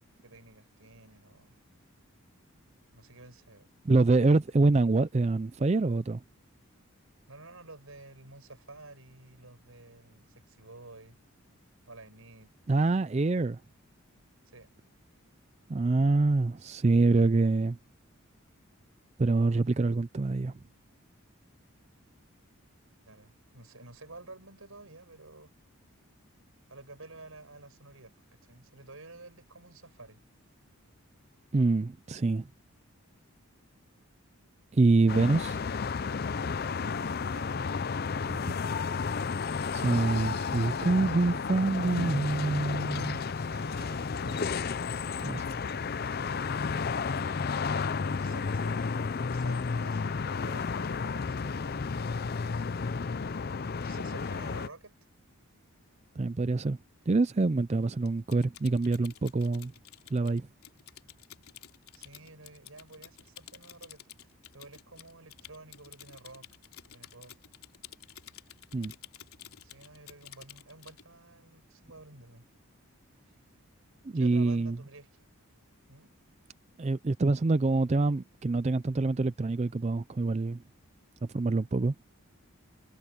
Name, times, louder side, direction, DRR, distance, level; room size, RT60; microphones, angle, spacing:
voice 1, 0.0-1.6 2.9-3.7 7.3-11.2 11.8-12.5 14.5-14.7 23.1-25.5 26.7-30.2 37.2-37.8 38.1-38.7 43.5-46.1 48.2-48.9 49.3-53.4 53.8-54.9 61.9-66.5 66.9-67.4 69.6-72.5 74.1-75.1 75.9-76.1, right 2 dB, 70° right, 5.4 m, -51 dB
voice 2, 3.9-6.2 12.7-13.6 15.7-17.8 19.2-20.5 31.5-32.4 34.7-35.6 38.5-38.6 39.7-43.2 45.2-45.4 56.2-56.8 57.1-59.7 60.1-60.5 68.7-68.9 74.1-74.8 76.8-80.6 81.3-81.9, right 3 dB, 30° right, 0.4 m, -26 dB
sound 1, 35.1-54.7, left 5 dB, 45° left, 0.5 m, -32 dB
Typing, 58.0-71.0, left 11 dB, 80° left, 3.0 m, -51 dB
head